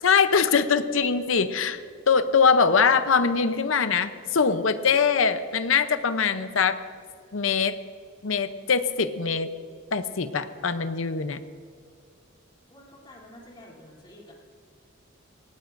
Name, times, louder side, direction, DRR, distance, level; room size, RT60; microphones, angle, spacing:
voice 1, 0.0-1.8 2.1-6.8 7.3-7.8 8.2-9.5 9.9-11.4, left 5 dB, 70° left, 10 dB, 0.7 m, -22 dB
voice 2, 12.7-14.3, left 1 dB, 25° left, -4 dB, 3.1 m, -49 dB
20.0 x 17.0 x 2.6 m, 2.2 s
head